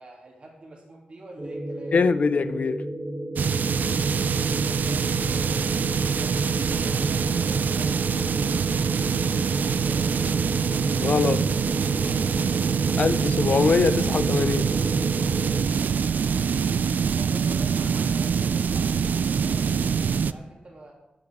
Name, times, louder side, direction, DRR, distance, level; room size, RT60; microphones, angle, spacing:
voice 1, 0.0-2.0 3.5-3.8 4.4-5.7 6.1-8.0 9.3-10.3 15.4-16.2 17.0-20.9, right 2 dB, 45° right, 3.0 m, -47 dB
sound 1, 1.4-15.7, right 1 dB, 20° right, 1.2 m, -33 dB
voice 2, 1.9-2.8 11.0-11.4 13.0-14.7, left 5 dB, 60° left, 0.5 m, -23 dB
sound 2, 3.4-20.3, right 6 dB, 80° right, 0.3 m, -24 dB
13.5 x 7.9 x 3.6 m
wide cardioid pair, 140°, 3 cm